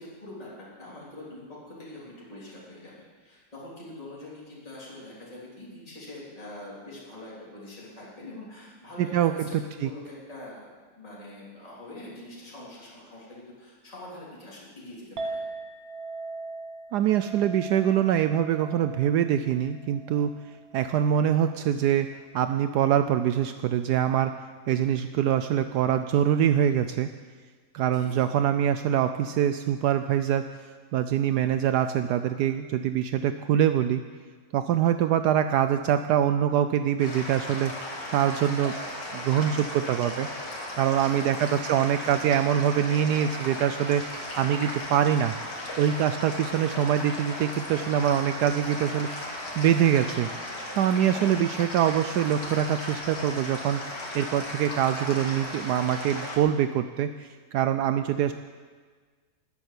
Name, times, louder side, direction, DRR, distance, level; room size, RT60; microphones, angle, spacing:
voice 1, 0.0-15.4 27.8-28.3 41.0-41.7 50.9-51.7, left 1 dB, 20° left, -7 dB, 3.5 m, -44 dB
voice 2, 9.0-9.3 9.8-9.9 16.9-20.3 20.7-24.3 24.7-27.1 27.7-30.7 30.9-34.0 34.5-37.7 38.1-38.8 39.1-45.3 45.8-50.3 50.7-53.8 54.1-58.3, right 10 dB, 75° right, 10 dB, 1.1 m, -24 dB
Chink clink, 15.2-21.5, right 3 dB, 60° right, 1.6 m, -40 dB
sound 1, 37.0-56.4, left 1 dB, 80° left, 2.9 m, -36 dB
13.5 x 8.8 x 9.4 m, 1.5 s
omnidirectional pair, 1.9 m